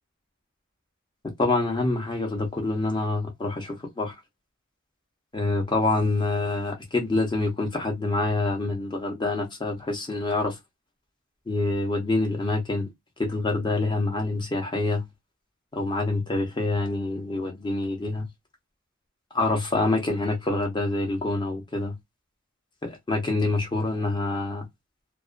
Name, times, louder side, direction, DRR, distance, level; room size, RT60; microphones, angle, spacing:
voice 1, 1.4-4.1 5.3-10.5 11.5-12.9 13.2-15.0 15.7-18.2 19.3-22.0 22.8-24.7, left 2 dB, 20° left, 0.7 m, -26 dB
2.3 x 2.2 x 2.4 m
head